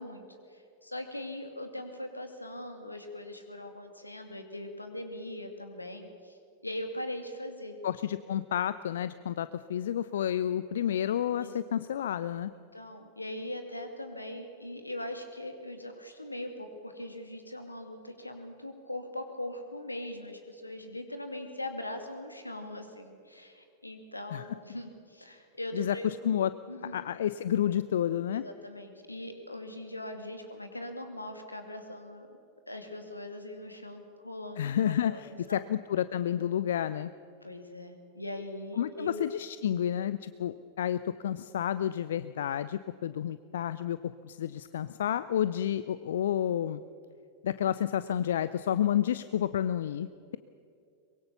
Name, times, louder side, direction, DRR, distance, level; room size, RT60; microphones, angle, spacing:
voice 1, 0.0-7.7 11.3-11.6 12.7-26.1 26.7-27.1 28.3-32.3 32.7-35.6 37.4-39.3, left 1 dB, 85° left, 6 dB, 2.5 m, -41 dB
voice 2, 7.8-12.5 24.3-24.4 25.7-26.5 26.9-28.4 34.6-37.1 38.8-46.8 47.4-50.4, left 10 dB, 60° left, 14 dB, 0.5 m, -30 dB
23.5 x 22.0 x 7.0 m, 2.5 s
figure-of-eight pair, 90°, 0 cm